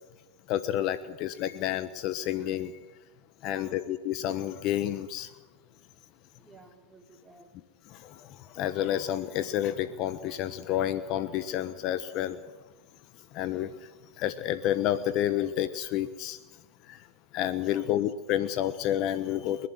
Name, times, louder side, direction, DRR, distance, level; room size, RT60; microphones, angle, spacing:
voice 1, 0.5-2.7 3.4-5.3 8.6-12.4 13.3-13.7 14.2-16.4 16.9-17.0 17.3-19.7, left 12 dB, 45° left, 13 dB, 1.1 m, -29 dB
voice 2, 3.4-3.8 6.4-7.5 17.6-18.1, right 3 dB, 10° right, 2 dB, 4.2 m, -54 dB
30.0 x 11.5 x 9.4 m, 1.2 s
hypercardioid pair, 115°, 0 cm